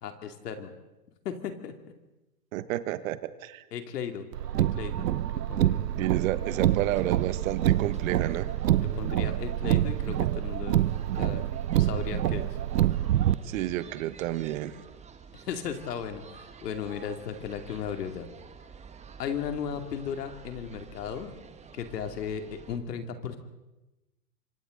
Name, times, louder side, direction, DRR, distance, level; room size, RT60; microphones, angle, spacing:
voice 1, 0.0-0.7 1.2-1.9 3.7-5.8 8.8-10.8 11.1-11.4 11.8-12.6 15.3-18.3 19.2-21.3 21.7-23.4, left 7 dB, 75° left, 6 dB, 2.7 m, -36 dB
voice 2, 2.5-3.6 6.0-8.5 13.4-14.8, right 14 dB, 55° right, 13 dB, 1.4 m, -31 dB
Car, 4.3-13.3, right 12 dB, 80° right, 0.9 m, -26 dB
sound 1, 6.4-22.8, right 6 dB, 15° right, 1.4 m, -48 dB
27.5 x 25.5 x 3.9 m, 1.0 s
hypercardioid pair, 120°, 48 cm